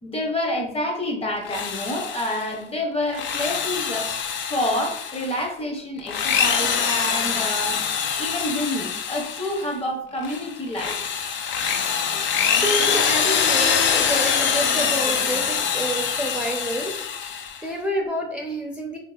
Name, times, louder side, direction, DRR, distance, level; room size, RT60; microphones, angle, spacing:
voice 1, 0.0-4.2 4.5-7.8 8.2-11.0, left 1 dB, 30° left, 2 dB, 0.8 m, -28 dB
Drill, 1.4-2.5 3.0-5.4 6.0-9.7 10.2-17.6, left 7 dB, 70° left, 0.4 m, -24 dB
voice 2, 12.1-16.9 17.6-19.0, right 1 dB, 5° right, -1 dB, 0.5 m, -29 dB
3.5 x 2.7 x 2.3 m, 0.69 s
cardioid pair, 90°, 20 cm